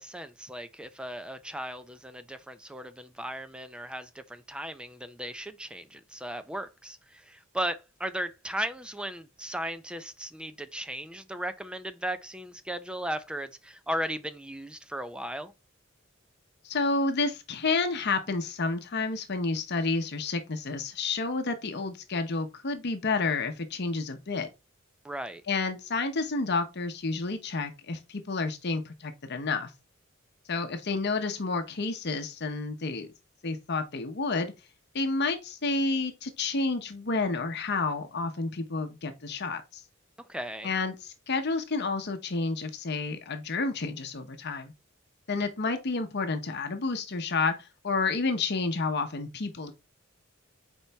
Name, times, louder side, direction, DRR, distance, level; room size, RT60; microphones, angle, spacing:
voice 1, 0.0-15.5 25.0-25.4 40.3-40.7, right 1 dB, 5° right, 0.5 m, -36 dB
voice 2, 16.6-24.5 25.5-29.7 30.5-33.1 33.4-34.5 34.9-39.8 40.6-44.7 45.3-49.7, left 3 dB, 55° left, 0.8 m, -30 dB
7.0 x 4.5 x 3.4 m
head